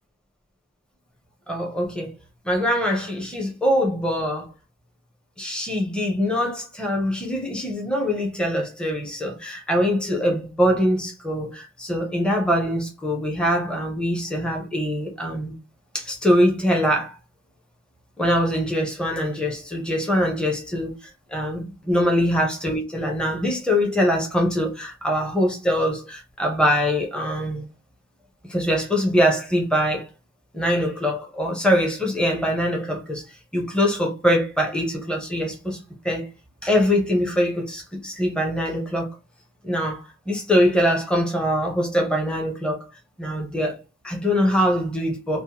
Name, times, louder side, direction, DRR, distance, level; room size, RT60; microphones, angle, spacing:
voice 1, 1.5-2.1 2.4-4.5 5.4-15.5 15.9-17.2 18.2-20.9 21.3-27.6 28.5-30.1 30.5-33.2 33.5-35.8 36.0-36.3 36.6-39.1 39.6-42.8 43.2-45.4, equal, 5° left, 0.6 m, -23 dB
2.8 x 2.1 x 2.8 m
head